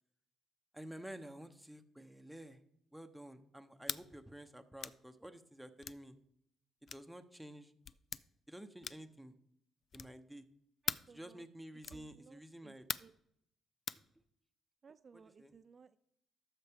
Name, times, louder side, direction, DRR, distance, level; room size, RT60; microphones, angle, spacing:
voice 1, 0.7-2.6 2.9-6.2 6.9-7.7 8.5-9.3 9.9-10.5 11.1-12.8 15.1-15.5, right 1 dB, 5° right, 8 dB, 0.8 m, -51 dB
sound 1, 3.8-4.1 4.8-5.0 5.8-6.0 6.9-7.1 7.8-8.2 8.8-9.2 9.9-10.2 10.9-11.1 11.8-12.1 12.9-13.2 13.9-14.0, left 6 dB, 50° left, 0.3 m, -41 dB
voice 2, 10.8-11.5 11.9-12.7 13.0-13.1 14.8-16.0, right 5 dB, 45° right, 10 dB, 0.4 m, -60 dB
13.0 x 6.4 x 3.5 m, 0.74 s
cardioid pair, 90°, 0 cm